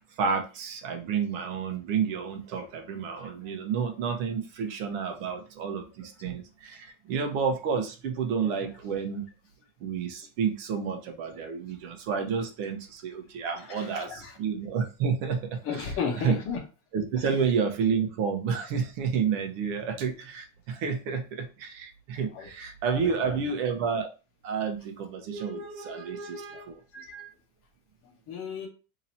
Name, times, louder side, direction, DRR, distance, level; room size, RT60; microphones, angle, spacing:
voice 1, 0.2-9.2 9.8-15.9 16.2-16.4 16.9-24.1 24.4-26.8, right 6 dB, 55° right, 5 dB, 0.9 m, -30 dB
voice 2, 13.6-14.4 15.6-16.6 22.1-22.5 22.9-23.5 26.9-27.3 28.3-28.7, left 6 dB, 30° left, 2 dB, 0.9 m, -34 dB
2.9 x 2.8 x 4.2 m, 0.34 s
supercardioid pair, 145°, 44 cm